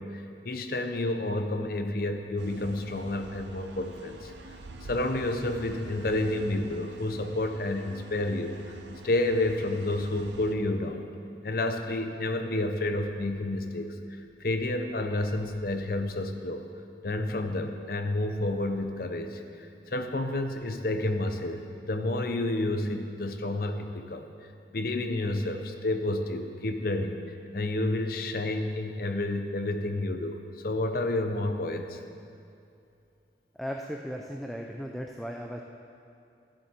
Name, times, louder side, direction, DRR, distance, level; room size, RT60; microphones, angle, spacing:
voice 1, 0.0-4.3 4.8-8.6 9.0-11.0 11.4-13.9 14.4-16.6 17.0-24.3 24.7-27.2 27.5-30.4 30.6-32.0, left 2 dB, 55° left, 6 dB, 0.7 m, -30 dB
sound 1, 2.4-10.5, right 2 dB, 80° right, 0.6 m, -46 dB
voice 2, 33.5-35.6, equal, ahead, 1 dB, 0.4 m, -36 dB
13.0 x 7.4 x 4.4 m, 2.6 s
head